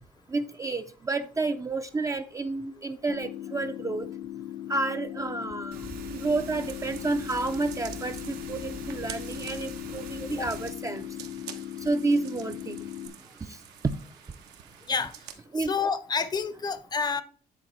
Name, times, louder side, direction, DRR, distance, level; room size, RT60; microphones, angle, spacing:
voice 1, 0.3-4.1 4.7-5.8 6.1-11.1 11.8-12.8 13.8-14.0 15.5-15.7, right 3 dB, 20° right, 0.4 m, -30 dB
sound 1, 3.1-13.1, left 12 dB, 55° left, 0.9 m, -39 dB
sound 2, 5.7-10.7, right 5 dB, 70° right, 2.4 m, -43 dB
sound 3, 6.6-15.4, right 9 dB, 85° right, 1.1 m, -47 dB
voice 2, 15.6-17.2, left 5 dB, 25° left, 0.6 m, -29 dB
9.3 x 3.9 x 4.3 m
cardioid pair, 110°, 17 cm